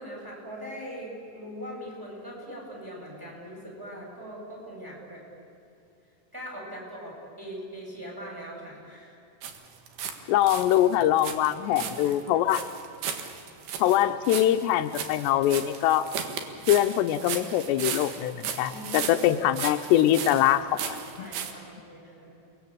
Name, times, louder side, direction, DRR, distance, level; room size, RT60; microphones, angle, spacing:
voice 1, 0.0-5.2 6.3-9.2 11.7-12.4 18.7-19.2 21.2-22.4, equal, 5° right, -1 dB, 7.6 m, -41 dB
sound 1, 9.4-10.2 10.4-21.5, right 7 dB, 70° right, 3.5 m, -36 dB
voice 2, 10.3-12.7 13.8-16.1 16.7-21.3, left 12 dB, 85° left, 8 dB, 2.9 m, -23 dB
29.5 x 20.5 x 8.8 m, 2.7 s
omnidirectional pair, 4.9 m